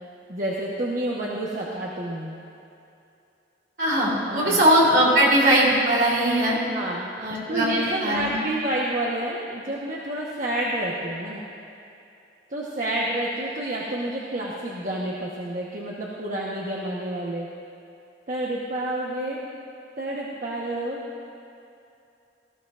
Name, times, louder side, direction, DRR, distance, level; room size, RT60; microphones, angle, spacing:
voice 1, 0.3-2.4 4.3-4.6 6.7-11.4 12.5-17.5 18.3-19.4 20.0-21.0, right 1 dB, 45° right, -5 dB, 1.2 m, -29 dB
voice 2, 3.8-6.6 7.2-7.7 8.0-8.4, right 1 dB, 70° right, -5 dB, 3.6 m, -20 dB
19.0 x 14.0 x 2.6 m, 2.6 s
head